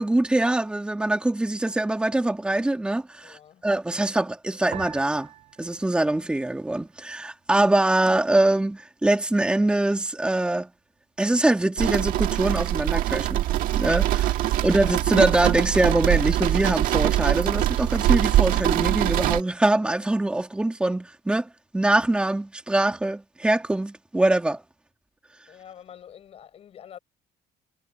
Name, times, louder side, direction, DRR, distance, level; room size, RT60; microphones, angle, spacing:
voice 1, 0.0-3.4 3.6-5.3 5.6-10.7 11.2-13.4 13.7-24.6, right 2 dB, 5° right, 2.3 m, -23 dB
voice 2, 3.2-3.6 14.2-14.8 25.5-27.0, left 9 dB, 40° left, 7.5 m, -47 dB
sound 1, 4.7-7.2 7.5-8.4 9.0-9.4, right 12 dB, 50° right, 3.4 m, -45 dB
sound 2, 11.8-19.4, right 14 dB, 65° right, 1.8 m, -23 dB
cardioid pair, 150°, 15 cm